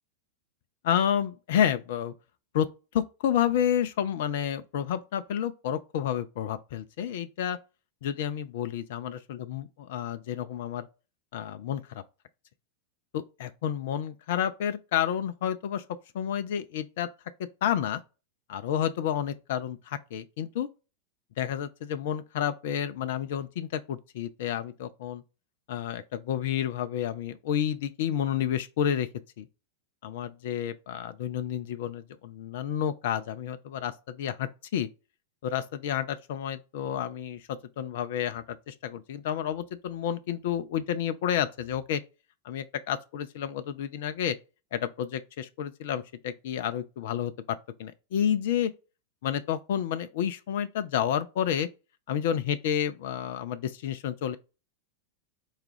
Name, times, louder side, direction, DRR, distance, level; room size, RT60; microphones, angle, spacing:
voice 1, 0.8-2.1 2.5-7.6 8.0-10.9 11.3-12.0 13.1-15.8 16.1-17.1 17.6-18.0 18.5-20.7 21.4-25.2 25.7-29.1 29.4-29.5 30.0-34.9 35.4-42.0 42.4-44.4 44.7-48.7 49.2-51.7 52.1-54.4, left 9 dB, 55° left, 0.3 m, -30 dB
4.6 x 2.3 x 3.2 m
figure-of-eight pair, 90°, 0 cm